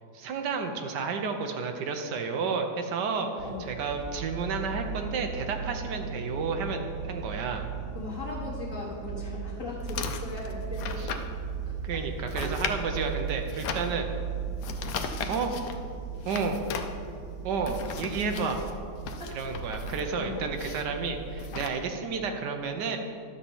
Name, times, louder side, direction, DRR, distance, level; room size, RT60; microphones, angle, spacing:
voice 1, 0.1-7.7 11.0-11.1 11.8-14.1 15.3-15.5 16.2-16.6 17.4-18.6 19.3-23.0, right 5 dB, 80° right, 5 dB, 1.4 m, -31 dB
sound 1, 3.4-21.5, right 6 dB, 55° right, 1.0 m, -37 dB
voice 2, 7.9-11.1 12.4-12.5 13.7-13.9 19.2-19.3 20.1-20.4 21.5-21.6, left 2 dB, 15° left, -9 dB, 1.3 m, -38 dB
sound 2, 9.8-21.7, left 5 dB, 75° left, 1.2 m, -38 dB
11.5 x 4.2 x 7.1 m, 2.3 s
omnidirectional pair, 1.8 m